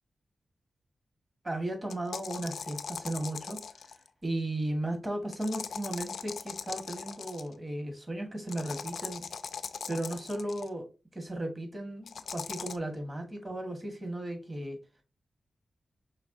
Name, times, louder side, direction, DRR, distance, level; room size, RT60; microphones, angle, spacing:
voice 1, 1.4-3.6 3.9-4.0 4.2-9.3 9.9-10.9 11.1-14.8, right 1 dB, 30° right, 4 dB, 1.4 m, -35 dB
sound 1, 1.9-4.1 5.3-7.5 8.5-10.7 12.1-12.8, left 6 dB, 90° left, 0.4 m, -40 dB
5.2 x 3.4 x 2.6 m, 0.31 s
wide cardioid pair, 90°, 0 cm